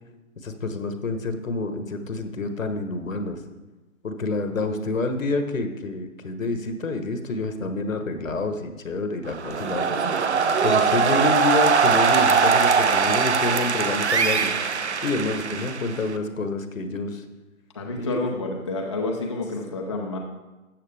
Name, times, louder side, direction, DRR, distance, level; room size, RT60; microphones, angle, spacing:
voice 1, 0.4-3.4 4.0-9.8 10.6-14.5 15.0-17.2 18.0-18.4, left 3 dB, 65° left, 7 dB, 1.4 m, -28 dB
sound 1, 9.3-16.2, right 5 dB, 55° right, 0.9 m, -21 dB
voice 2, 17.7-20.2, left 2 dB, 20° left, 0 dB, 0.6 m, -29 dB
13.5 x 8.2 x 3.4 m, 1.1 s
figure-of-eight pair, 155°, 42 cm